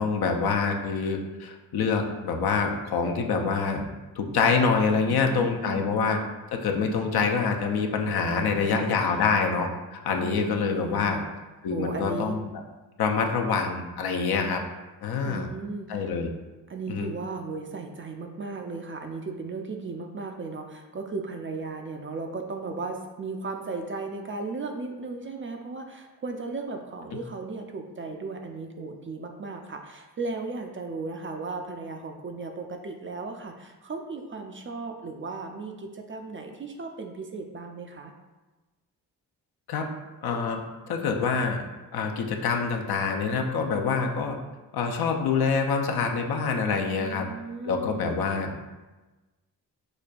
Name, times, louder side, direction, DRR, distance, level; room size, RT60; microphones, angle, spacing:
voice 1, 0.0-3.8 4.2-6.2 6.5-11.2 11.6-12.4 13.0-14.6 15.0-15.5 15.9-16.3 16.9-17.1 39.7-39.9 40.2-40.6 40.9-41.6 41.9-44.4 44.7-47.3 47.6-48.5, left 5 dB, 60° left, 3 dB, 0.6 m, -26 dB
voice 2, 5.0-6.0 8.3-9.2 10.1-11.2 11.7-12.4 15.2-16.1 16.7-38.1 46.9-48.5, right 3 dB, 30° right, 3 dB, 0.4 m, -36 dB
5.1 x 2.2 x 2.5 m, 1.2 s
hypercardioid pair, 40°, 44 cm